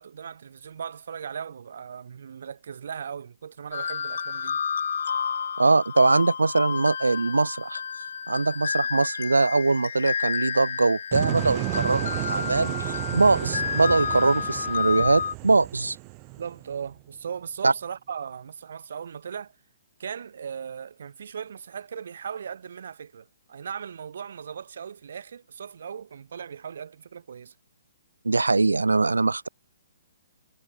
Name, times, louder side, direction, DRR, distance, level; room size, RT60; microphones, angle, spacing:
voice 1, 0.0-4.6 16.4-19.6 20.0-27.5, right 7 dB, 60° right, 7.5 m, -38 dB
sound 1, 3.7-15.3, left 7 dB, 65° left, 1.3 m, -31 dB
voice 2, 5.6-7.8 8.3-16.0 17.6-17.7 28.2-29.5, right 3 dB, 80° right, 2.6 m, -22 dB
sound 2, 11.1-17.0, right 40 dB or more, 30° right, 1.5 m, -32 dB
figure-of-eight pair, 125°, 0 cm